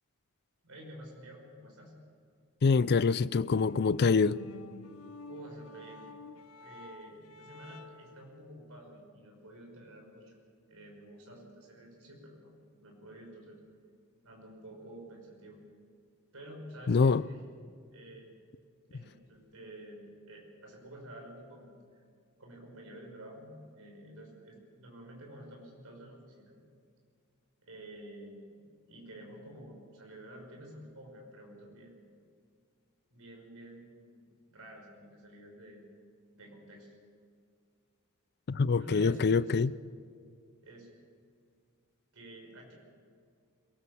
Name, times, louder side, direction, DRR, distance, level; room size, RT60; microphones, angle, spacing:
voice 1, 0.6-1.9 5.2-6.1 6.5-10.4 10.7-12.5 12.8-13.6 14.2-15.6 16.3-17.4 17.9-18.3 18.9-22.0 22.4-26.6 27.6-32.0 33.1-35.8 36.3-36.9 38.8-39.5 40.6-40.9 42.1-42.7, right 1 dB, 70° right, 5.6 m, -50 dB
voice 2, 2.6-4.4 16.9-17.2 38.5-39.7, left 4 dB, 50° left, 0.4 m, -25 dB
sound 1, 3.2-8.2, left 3 dB, 80° left, 0.9 m, -50 dB
22.5 x 19.0 x 7.1 m
head